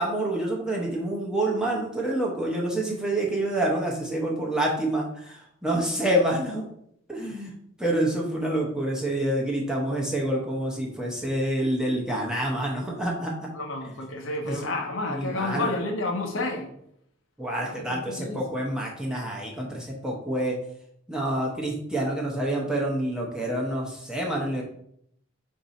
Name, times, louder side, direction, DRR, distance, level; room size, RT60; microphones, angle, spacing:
voice 1, 0.0-6.6 7.1-7.5 7.8-13.5 14.4-14.7 15.1-15.7 17.4-20.5 21.1-24.6, right 1 dB, 5° right, -3 dB, 0.8 m, -27 dB
voice 2, 13.5-16.7 17.6-18.6, left 2 dB, 75° left, 3 dB, 0.8 m, -30 dB
4.6 x 2.6 x 4.0 m, 0.72 s
head